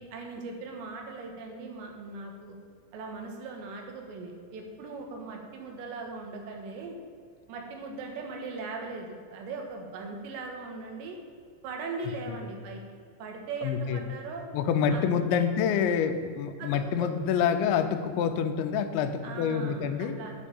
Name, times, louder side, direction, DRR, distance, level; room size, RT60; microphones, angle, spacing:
voice 1, 0.0-2.6 2.9-7.0 7.5-11.2 11.6-12.8 13.2-14.4 14.9-15.4 16.6-17.1 19.2-20.3, right 3 dB, 80° right, 2 dB, 3.6 m, -39 dB
voice 2, 13.6-14.0 14.5-20.2, left 7 dB, 90° left, 8 dB, 3.1 m, -27 dB
10.0 x 5.4 x 8.5 m, 2.2 s
omnidirectional pair, 5.1 m